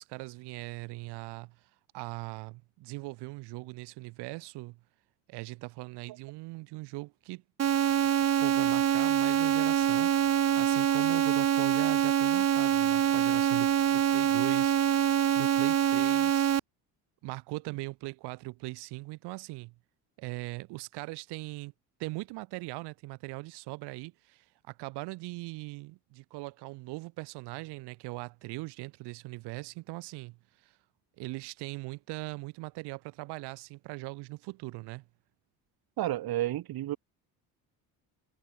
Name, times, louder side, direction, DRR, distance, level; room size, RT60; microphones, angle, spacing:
voice 1, 0.0-1.6 1.9-4.8 5.3-7.4 8.4-16.5 17.2-19.7 20.2-21.7 22.0-30.4 30.6-30.7 31.2-35.0, right 23 dB, 90° right, 3.0 m, -40 dB
sound 1, 7.6-16.6, right 10 dB, 40° right, 1.1 m, -25 dB
voice 2, 36.0-37.0, right 14 dB, 65° right, 2.5 m, -31 dB
cardioid pair, 100°, 39 cm